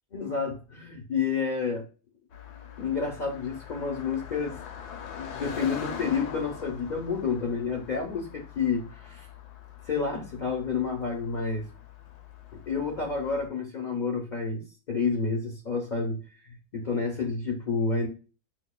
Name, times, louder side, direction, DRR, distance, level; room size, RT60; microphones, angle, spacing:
voice 1, 0.1-1.8 2.8-4.6 5.2-9.3 9.9-11.7 12.7-14.6 14.9-18.1, left 5 dB, 55° left, 0 dB, 0.5 m, -29 dB
Car passing by, 2.3-13.5, left 8 dB, 80° left, 1.2 m, -43 dB
6.1 x 2.1 x 2.2 m, 0.33 s
omnidirectional pair, 1.7 m